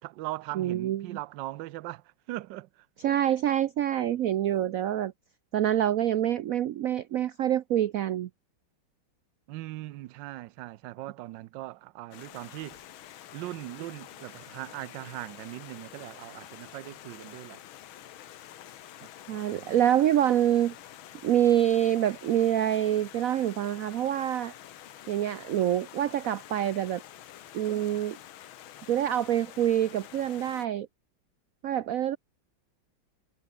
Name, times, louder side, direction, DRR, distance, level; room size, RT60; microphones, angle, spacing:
voice 1, 0.0-2.9 9.5-12.8 13.3-17.6, right 17 dB, 75° right, 1.2 m, -40 dB
voice 2, 0.5-1.2 3.0-5.1 5.5-8.3 19.3-20.7 21.2-24.5 25.1-27.0 27.5-28.2 28.9-30.9 31.6-32.2, right 11 dB, 90° right, 0.7 m, -26 dB
Stream, 12.1-30.7, left 11 dB, 80° left, 1.9 m, -48 dB
omnidirectional pair, 2.2 m